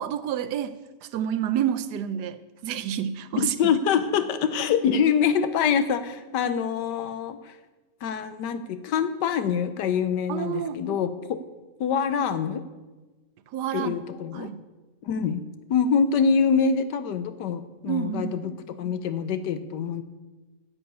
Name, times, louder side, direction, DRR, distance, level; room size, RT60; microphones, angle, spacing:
voice 1, 0.0-3.7 10.3-10.8 13.5-13.9 14.3-14.6 17.9-18.5, right 9 dB, 80° right, 12 dB, 1.2 m, -29 dB
voice 2, 3.3-7.5 8.0-11.4 11.8-12.6 13.7-14.5 15.0-15.4 15.7-20.0, left 6 dB, 90° left, 11 dB, 1.4 m, -25 dB
10.5 x 7.0 x 8.3 m, 1.2 s
omnidirectional pair, 1.8 m